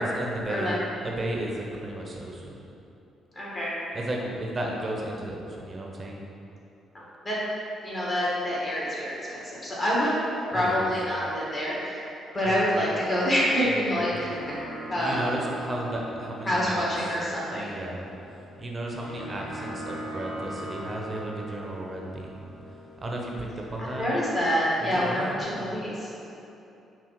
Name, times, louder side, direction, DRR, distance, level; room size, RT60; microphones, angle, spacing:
voice 1, 0.0-2.6 3.9-6.2 10.5-10.9 12.4-12.6 13.7-14.1 15.0-16.8 17.5-18.1 18.6-22.5 23.0-24.0 24.8-25.8, right 1 dB, 35° right, -1 dB, 0.7 m, -34 dB
voice 2, 3.3-3.7 6.9-7.4 7.8-12.0 12.3-14.3 14.9-15.2 16.4-17.7 23.8-26.3, equal, 35° left, -6 dB, 1.4 m, -27 dB
sound 1, 13.7-24.7, right 1 dB, 65° left, 0.7 m, -41 dB
5.7 x 2.4 x 3.0 m, 2.9 s
supercardioid pair, 60°, 0 cm